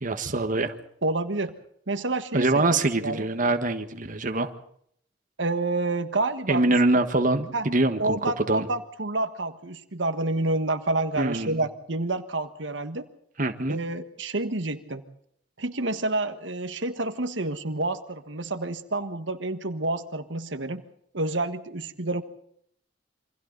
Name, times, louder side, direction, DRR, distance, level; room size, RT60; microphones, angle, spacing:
voice 1, 0.0-0.7 2.3-4.5 6.5-8.6 11.2-11.6 13.4-13.8, right 2 dB, 45° right, 7 dB, 1.5 m, -24 dB
voice 2, 1.0-1.5 1.9-3.2 5.4-6.7 7.5-7.7 8.0-13.0 13.7-15.0 15.6-20.8 21.1-22.2, right 2 dB, 85° right, 9 dB, 1.6 m, -29 dB
28.0 x 25.0 x 4.0 m, 0.68 s
head